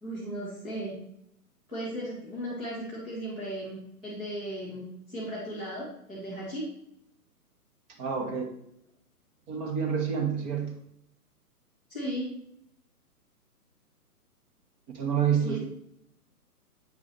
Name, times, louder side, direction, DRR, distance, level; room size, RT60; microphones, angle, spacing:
voice 1, 0.0-1.0 1.7-6.7 8.2-8.3 11.9-12.3 15.4-15.6, right 1 dB, 5° right, -12 dB, 0.5 m, -36 dB
voice 2, 7.9-8.5 9.5-10.7 14.9-15.6, right 7 dB, 20° right, 3 dB, 1.0 m, -28 dB
8.7 x 6.0 x 3.0 m, 0.76 s
figure-of-eight pair, 130°, 47 cm